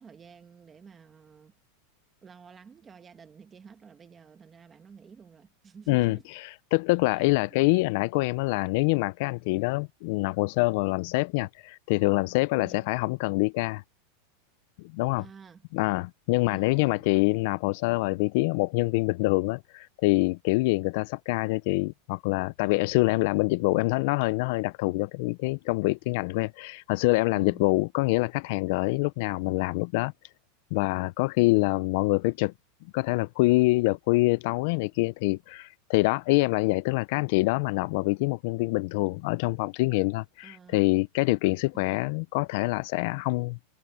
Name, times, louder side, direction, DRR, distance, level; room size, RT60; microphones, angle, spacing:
voice 1, 0.0-1.5 2.2-6.3 7.1-7.6 9.5-9.9 12.6-12.9 15.2-15.7 16.4-17.1 27.3-27.7 31.5-31.8 40.4-40.9 41.7-42.0, right 6 dB, 15° right, 1.7 m, -51 dB
voice 2, 5.9-6.2 6.7-13.8 14.9-15.2 15.7-30.1 30.7-32.5 32.9-43.6, left 23 dB, 45° left, 0.3 m, -25 dB
supercardioid pair, 170°, 0 cm